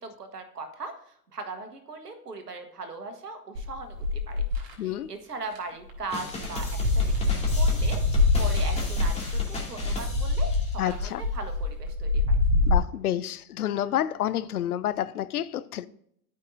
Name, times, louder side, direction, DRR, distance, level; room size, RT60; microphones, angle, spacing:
voice 1, 0.0-0.9 1.3-4.4 4.8-7.1 7.5-8.0 8.4-9.4 9.7-12.4, right 3 dB, 80° right, 1.4 m, -39 dB
sound 1, 3.5-4.7 5.4-5.6 5.9-12.8, left 3 dB, 55° right, 3.4 m, -25 dB
voice 2, 4.8-5.1 10.8-11.2 12.7-15.9, left 11 dB, 70° left, 0.6 m, -29 dB
sound 2, 6.1-11.0, left 2 dB, 15° left, 2.5 m, -39 dB
13.5 x 5.5 x 2.6 m
figure-of-eight pair, 85°, 46 cm